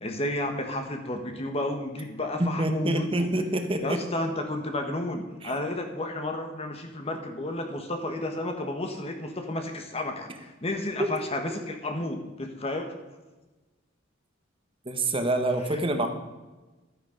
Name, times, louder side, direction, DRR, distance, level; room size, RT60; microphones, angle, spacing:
voice 1, 0.0-3.3 3.8-12.9, left 1 dB, 30° left, 4 dB, 1.2 m, -32 dB
voice 2, 2.4-4.0 5.4-5.5 11.0-11.1 14.8-16.1, right 1 dB, 30° right, 6 dB, 1.3 m, -26 dB
12.5 x 9.3 x 5.1 m, 1.2 s
head